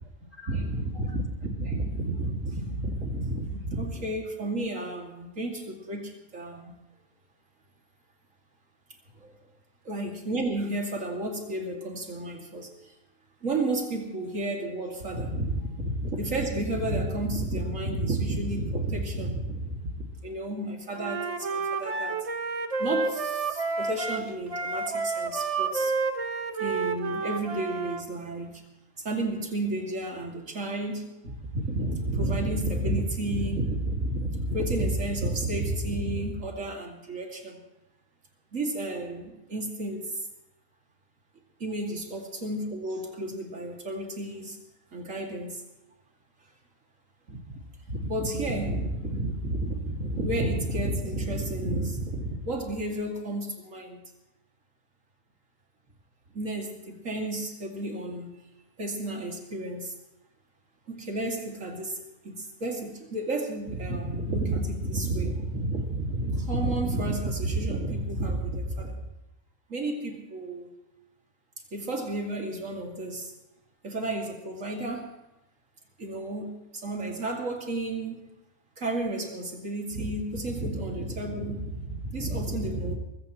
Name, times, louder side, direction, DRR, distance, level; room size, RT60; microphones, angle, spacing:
voice 1, 0.3-6.8 9.2-9.3 9.8-12.9 13.4-22.3 22.8-25.9 26.6-28.7 29.0-37.6 38.5-40.2 41.6-44.6 44.9-45.6 47.3-47.6 47.9-54.0 56.3-58.3 58.8-60.0 60.9-69.0 69.7-70.7 71.7-73.3 73.8-75.2 76.0-78.4 78.8-82.9, right 1 dB, 55° right, 1 dB, 2.9 m, -31 dB
Wind instrument woodwind instrument, 21.0-28.0, right 4 dB, 30° right, 0.7 m, -30 dB
23.0 x 15.5 x 3.1 m, 0.96 s
omnidirectional pair, 1.7 m